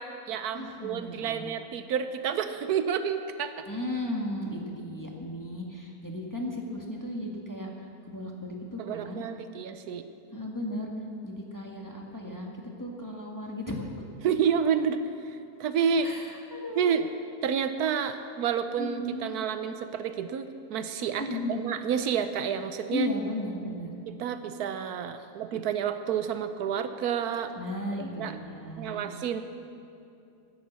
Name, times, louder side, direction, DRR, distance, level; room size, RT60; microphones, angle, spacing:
voice 1, 0.0-3.5 8.8-10.0 14.2-16.1 16.8-17.0 17.4-23.1 24.1-27.5 28.2-28.4 28.8-29.4, right 7 dB, 75° right, 9 dB, 1.2 m, -29 dB
voice 2, 0.5-1.5 3.7-9.2 10.3-10.9 11.2-12.5 12.8-13.9 16.0-16.9 18.8-19.2 21.2-21.6 22.9-23.9 25.2-25.3 27.6-29.1, left 1 dB, 10° left, -1 dB, 1.6 m, -35 dB
12.0 x 11.0 x 8.1 m, 2.6 s
omnidirectional pair, 1.7 m